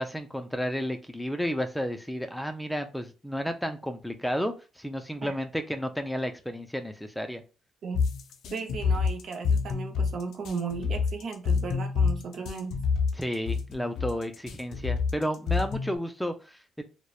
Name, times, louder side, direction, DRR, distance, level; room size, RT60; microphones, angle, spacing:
voice 1, 0.0-7.4 13.1-16.8, equal, 5° left, 7 dB, 0.3 m, -32 dB
sound 1, 7.9-16.0, left 5 dB, 75° left, 0.4 m, -27 dB
voice 2, 8.5-12.7, right 5 dB, 60° right, 4 dB, 0.5 m, -36 dB
2.8 x 2.1 x 2.3 m, 0.32 s
cardioid pair, 90°, 0 cm